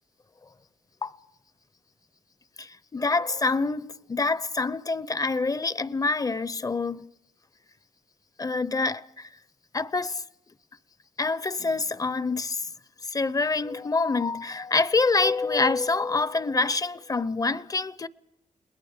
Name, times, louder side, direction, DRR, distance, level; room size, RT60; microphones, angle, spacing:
voice 1, 2.6-7.1 8.4-9.3 9.7-10.2 11.2-12.7 13.0-18.1, left 3 dB, 30° left, 0.7 m, -26 dB
29.5 x 20.5 x 5.1 m
cardioid pair, 80°, 12 cm